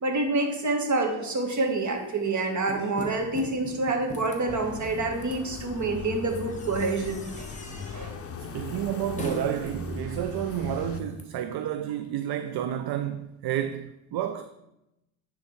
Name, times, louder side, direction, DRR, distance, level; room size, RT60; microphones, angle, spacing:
voice 1, 0.0-7.5 7.9-8.2, right 2 dB, 40° right, 1.6 m, -27 dB
sound 1, 1.4-11.2, left 1 dB, 15° left, 1.4 m, -44 dB
sound 2, 4.5-11.0, left 5 dB, 30° left, 0.7 m, -39 dB
voice 2, 8.4-14.5, right 10 dB, 60° right, 0.5 m, -30 dB
9.7 x 3.5 x 4.5 m
cardioid pair, 85°, 44 cm